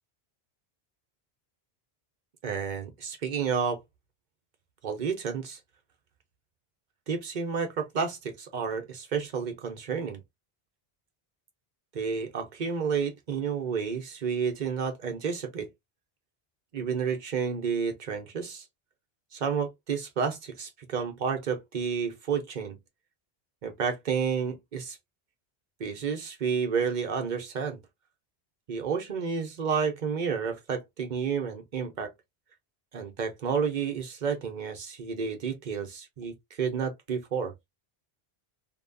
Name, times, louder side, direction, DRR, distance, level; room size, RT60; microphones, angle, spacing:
voice 1, 2.4-3.8 4.8-5.6 7.1-10.2 11.9-15.7 16.7-18.6 19.3-22.8 23.6-25.0 25.8-27.8 28.7-32.1 32.9-37.5, right 6 dB, 50° right, 0.8 m, -30 dB
2.8 x 2.3 x 2.5 m
omnidirectional pair, 1.0 m